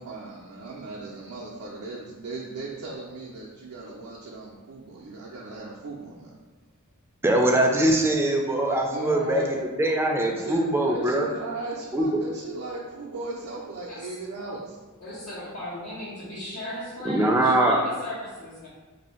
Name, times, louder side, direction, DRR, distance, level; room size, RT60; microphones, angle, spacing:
voice 1, 0.0-6.3 8.9-9.5 10.0-14.8, right 3 dB, 85° right, -6 dB, 0.5 m, -37 dB
voice 2, 7.2-9.4 9.8-11.3 11.9-12.1 17.0-17.8, right 1 dB, 10° right, 1 dB, 0.4 m, -22 dB
voice 3, 15.0-18.7, equal, 85° left, -12 dB, 1.2 m, -37 dB
2.7 x 2.7 x 4.3 m, 1.3 s
head